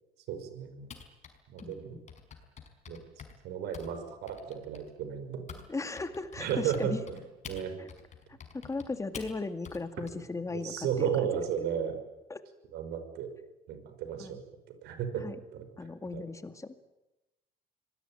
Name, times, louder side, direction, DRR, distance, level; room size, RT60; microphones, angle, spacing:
voice 1, 0.3-0.9 1.5-2.0 2.9-3.0 3.4-5.4 6.4-7.2 7.5-7.7 10.5-12.0 12.7-13.3 13.7-14.4 14.8-15.2 15.5-15.7 16.1-16.2, right 8 dB, 80° right, 8 dB, 5.6 m, -34 dB
Typing, 0.9-5.7 6.0-10.1, left 6 dB, 45° left, 5.1 m, -48 dB
voice 2, 1.6-2.0 5.7-7.0 7.8-7.9 8.3-11.4 12.3-12.4 14.2-14.4 15.2-15.4 15.8-16.8, left 3 dB, 20° left, 9 dB, 2.2 m, -37 dB
26.5 x 20.0 x 9.2 m, 1.0 s
cardioid pair, 110°, 17 cm